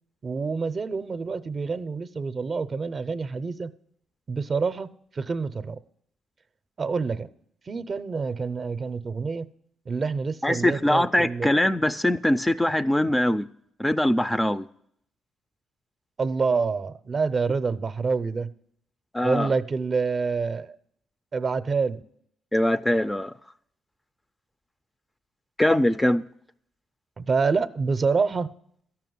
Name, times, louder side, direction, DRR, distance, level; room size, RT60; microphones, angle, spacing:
voice 1, 0.2-3.7 4.3-5.8 6.8-7.3 7.7-9.5 9.9-11.5 16.2-18.5 19.2-20.8 21.3-22.0 27.2-28.5, right 4 dB, 40° right, 0.6 m, -27 dB
voice 2, 10.4-13.5 13.8-14.7 19.1-19.5 22.5-23.3 25.6-26.2, left 1 dB, 10° left, 0.4 m, -22 dB
13.5 x 5.9 x 9.3 m
cardioid pair, 90°, 0 cm